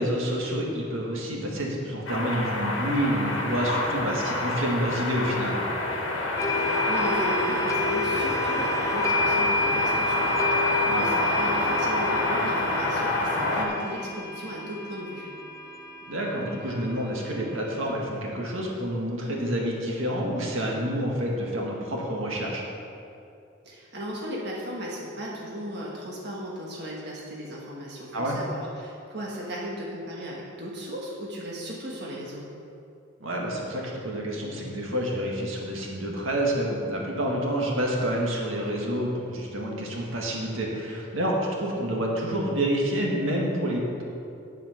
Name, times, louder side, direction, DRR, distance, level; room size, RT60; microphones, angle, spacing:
voice 1, 0.0-5.6 10.8-11.1 16.1-22.6 28.1-28.4 33.2-44.0, equal, 85° right, -2 dB, 1.8 m, -28 dB
sound 1, 2.1-13.7, left 2 dB, 75° left, 1.5 m, -27 dB
sound 2, 6.4-18.0, left 1 dB, 15° left, 0.5 m, -30 dB
voice 2, 6.6-15.3 23.6-32.4, equal, 55° right, -4 dB, 1.4 m, -36 dB
9.0 x 7.8 x 5.8 m, 2.6 s
head